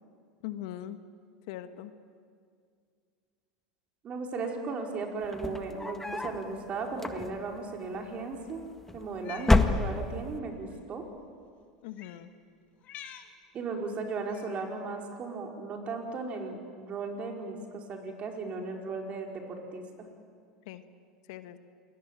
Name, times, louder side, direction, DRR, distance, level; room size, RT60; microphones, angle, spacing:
voice 1, 0.4-1.0 1.5-1.9 11.8-12.3 20.6-20.8 21.3-21.6, left 12 dB, 65° left, 10 dB, 1.5 m, -40 dB
voice 2, 4.0-8.6 8.9-11.0 13.5-19.8, right 4 dB, 40° right, 2 dB, 5.0 m, -36 dB
sound 1, 5.2-6.4 6.9-7.6 8.6-9.1 9.4-10.3, left 2 dB, 10° left, 1.8 m, -27 dB
Cat, 9.1-9.6 10.6-10.8 11.9-12.2 12.8-13.3 14.3-14.6, left 10 dB, 50° left, 2.1 m, -46 dB
28.5 x 21.5 x 9.1 m, 2.2 s
hypercardioid pair, 85°, 3 cm